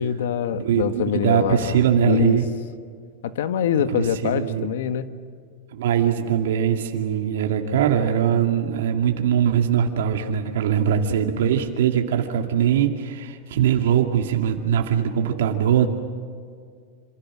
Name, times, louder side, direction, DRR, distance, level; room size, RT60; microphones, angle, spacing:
voice 1, 0.0-2.4 3.2-5.1, left 8 dB, 80° left, 10 dB, 1.5 m, -24 dB
voice 2, 0.5-2.4 3.9-4.7 5.7-15.9, right 9 dB, 85° right, 3 dB, 2.4 m, -21 dB
27.0 x 27.0 x 6.3 m, 2.1 s
supercardioid pair, 165°, 0 cm